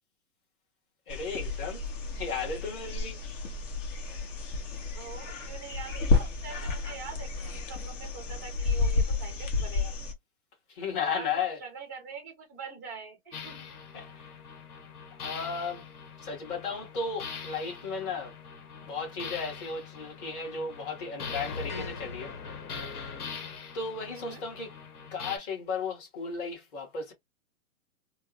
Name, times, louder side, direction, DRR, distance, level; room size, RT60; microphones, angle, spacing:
sound 1, 1.1-10.1, left 3 dB, 55° left, 1.2 m, -31 dB
voice 1, 1.1-1.8 2.1-3.2 10.7-11.6 13.9-14.3 15.2-15.8 16.2-18.3 18.8-22.3 23.7-24.7 25.1-27.1, left 5 dB, 35° left, 1.6 m, -34 dB
voice 2, 4.9-9.9 11.0-13.6 24.1-24.4, right 6 dB, 15° right, 0.3 m, -44 dB
sound 2, 13.3-25.4, left 5 dB, 85° left, 1.2 m, -42 dB
3.4 x 2.1 x 2.4 m
hypercardioid pair, 155°, 44 cm